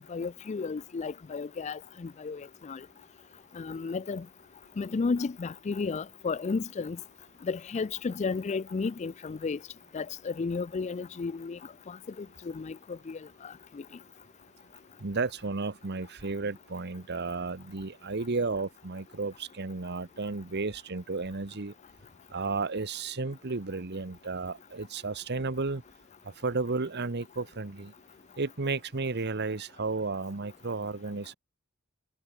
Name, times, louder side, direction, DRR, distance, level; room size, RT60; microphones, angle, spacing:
voice 1, 0.1-2.9 3.5-4.3 4.8-7.0 7.4-9.6 9.9-11.6 11.9-13.8, left 4 dB, 35° left, 0.4 m, -33 dB
voice 2, 15.0-21.7 22.3-25.8 26.2-27.9 28.4-31.4, right 3 dB, 50° right, 1.0 m, -33 dB
head